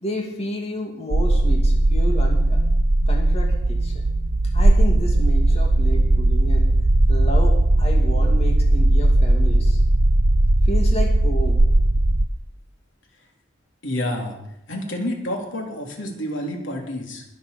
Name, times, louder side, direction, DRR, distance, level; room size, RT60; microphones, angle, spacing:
voice 1, 0.0-2.6 3.1-4.0 4.5-6.7 7.1-9.8 10.6-11.6, equal, 35° left, 1 dB, 2.4 m, -31 dB
sound 1, 1.1-12.3, right 1 dB, 55° right, 0.7 m, -18 dB
voice 2, 13.8-14.4 14.7-17.2, left 1 dB, 85° left, 1 dB, 3.4 m, -29 dB
21.5 x 7.2 x 7.0 m, 0.84 s
head